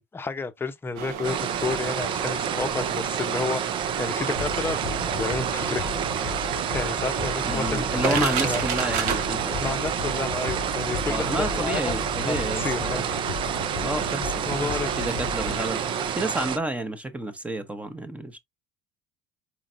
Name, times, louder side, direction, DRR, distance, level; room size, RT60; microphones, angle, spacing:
voice 1, 0.0-3.6 4.0-5.9 6.7-8.6 9.6-13.0 14.5-15.0, left 4 dB, 20° left, 0.8 m, -31 dB
sound 1, 1.0-16.1, right 6 dB, 70° right, 1.2 m, -33 dB
sound 2, 1.2-16.6, right 9 dB, 45° right, 0.6 m, -29 dB
sound 3, 4.3-15.6, left 9 dB, 60° left, 0.5 m, -36 dB
voice 2, 7.4-9.6 11.1-13.0 13.8-14.7 15.0-15.8 16.2-18.4, right 1 dB, 10° right, 1.0 m, -30 dB
4.5 x 3.7 x 2.6 m
supercardioid pair, 95°, 11 cm